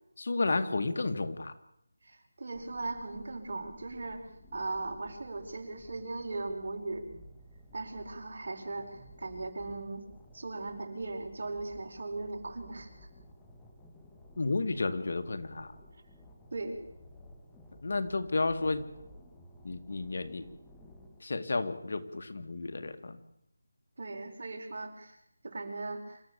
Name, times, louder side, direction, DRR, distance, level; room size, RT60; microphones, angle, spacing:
voice 1, 0.2-1.5 14.4-15.7 17.8-18.9 19.6-20.5 21.2-23.2, left 3 dB, 55° left, 9 dB, 2.1 m, -32 dB
voice 2, 2.0-7.0 7.7-10.1 10.3-13.1 16.5-16.8 24.0-25.2 25.4-26.2, right 3 dB, 50° right, 4 dB, 5.0 m, -38 dB
sound 1, 2.5-21.2, equal, 5° left, 2.1 m, -55 dB
27.0 x 14.5 x 8.5 m, 0.77 s
figure-of-eight pair, 170°, 0 cm